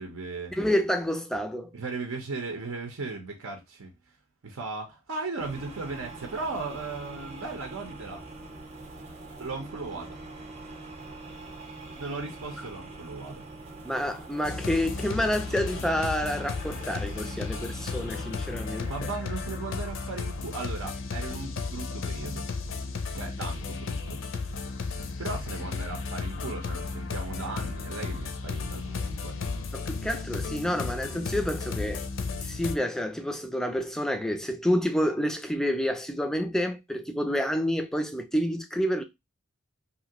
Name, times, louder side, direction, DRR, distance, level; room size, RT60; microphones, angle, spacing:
voice 1, 0.0-0.6 1.7-3.9 4.4-8.2 9.4-10.2 11.9-13.4 18.9-22.5 23.1-24.2 25.2-29.4, right 3 dB, 85° right, 0.7 m, -37 dB
voice 2, 0.5-1.7 13.8-18.9 29.7-32.0 32.4-39.0, equal, ahead, 0.3 m, -28 dB
sound 1, 5.4-19.0, right 2 dB, 30° right, 0.6 m, -44 dB
Ngôi Sao Sáng Chói, 14.4-32.7, left 4 dB, 65° left, 0.5 m, -34 dB
2.9 x 2.5 x 2.8 m
head